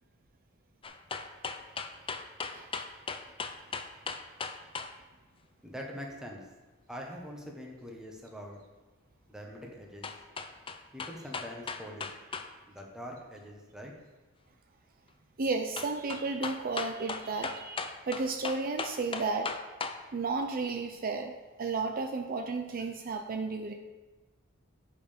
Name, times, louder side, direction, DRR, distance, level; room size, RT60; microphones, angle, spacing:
sound 1, 0.8-4.9 10.0-12.5 12.8-12.9 15.8-20.0 20.4-20.5, left 4 dB, 25° left, 0.5 m, -37 dB
voice 1, 5.6-6.4 6.9-8.6 9.3-10.1 10.9-12.1 12.7-13.9, equal, 5° right, -1 dB, 1.3 m, -43 dB
voice 2, 15.4-19.5 20.1-21.3 21.6-23.7, right 4 dB, 45° right, 4 dB, 0.5 m, -33 dB
9.1 x 5.6 x 5.2 m, 1.2 s
head